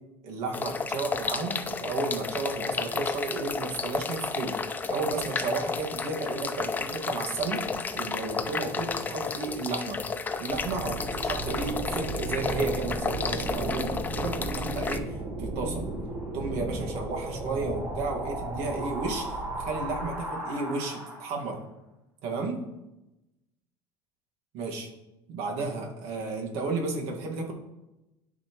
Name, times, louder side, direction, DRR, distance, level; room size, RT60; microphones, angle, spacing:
voice 1, 0.2-4.5 4.9-7.6 7.9-10.0 10.4-15.1 15.4-15.9 16.3-19.4 19.7-21.6 22.2-22.6 24.5-24.9 25.3-27.5, right 3 dB, 70° right, 0 dB, 1.7 m, -33 dB
sound 1, 0.5-15.0, left 5 dB, 15° left, 0.4 m, -32 dB
sound 2, 10.5-21.5, right 2 dB, 30° right, 2.8 m, -34 dB
11.5 x 5.3 x 3.0 m, 0.96 s
cardioid pair, 140°, 11 cm